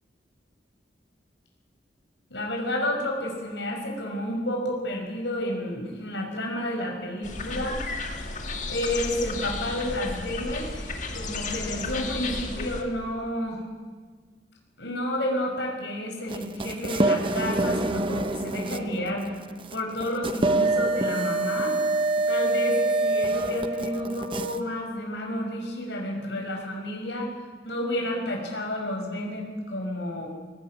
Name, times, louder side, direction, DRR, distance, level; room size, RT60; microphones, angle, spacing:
voice 1, 2.3-7.8 8.7-13.6 14.8-19.3 19.7-21.8 22.3-27.3 27.6-30.3, left 1 dB, 70° left, 1 dB, 5.5 m, -30 dB
sound 1, 7.2-12.8, left 3 dB, 40° left, 2.3 m, -33 dB
sound 2, 16.3-24.6, right 2 dB, 30° right, 1.0 m, -26 dB
20.0 x 19.0 x 9.7 m, 1.5 s
head